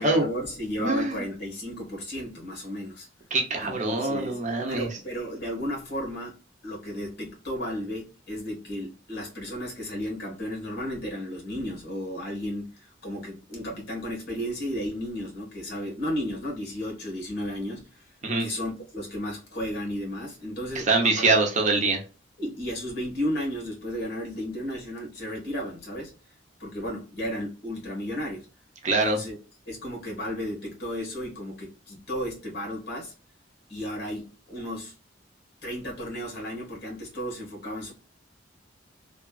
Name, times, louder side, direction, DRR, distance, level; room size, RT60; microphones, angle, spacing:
voice 1, 0.0-3.1 3.6-6.3 6.6-18.1 18.4-21.3 22.4-26.1 26.6-28.5 29.0-29.4 29.7-33.1 33.7-34.9 35.6-37.9, equal, 55° left, 1.5 m, -34 dB
voice 2, 0.8-1.2 3.3-4.9 18.2-18.4 20.9-22.0 28.8-29.2, right 3 dB, 40° right, 0.7 m, -24 dB
3.0 x 2.4 x 2.3 m
head